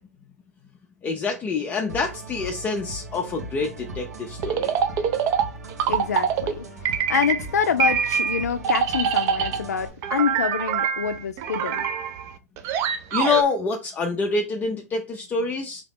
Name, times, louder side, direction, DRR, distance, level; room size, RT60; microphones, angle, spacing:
voice 1, 1.0-4.8 13.1-15.8, left 4 dB, 20° left, 0.5 m, -26 dB
sound 1, 1.9-9.9, right 1 dB, 80° right, 1.1 m, -39 dB
sound 2, 4.4-6.6 6.8-7.5 7.8-9.7 10.0-13.4, right 8 dB, 35° right, 0.5 m, -24 dB
voice 2, 5.9-6.7 7.1-11.8, left 7 dB, 80° left, 0.4 m, -26 dB
3.8 x 2.8 x 3.4 m
hypercardioid pair, 115°, 9 cm